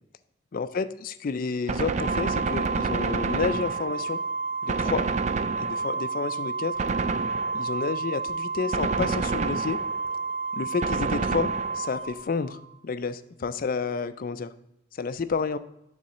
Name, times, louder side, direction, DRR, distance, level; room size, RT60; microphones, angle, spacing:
voice 1, 0.5-4.2 4.6-5.1 5.6-6.8 7.5-9.8 10.5-14.5 14.9-15.6, left 5 dB, 45° left, 13 dB, 0.4 m, -30 dB
Gunshot gunfire, 1.7-4.2 4.7-6.1 6.8-7.8 8.7-10.1 10.8-12.0, right 4 dB, 35° right, 0.3 m, -29 dB
Organ, 2.0-12.7, right 4 dB, 60° right, 1.6 m, -31 dB
7.2 x 3.8 x 6.4 m, 0.82 s
head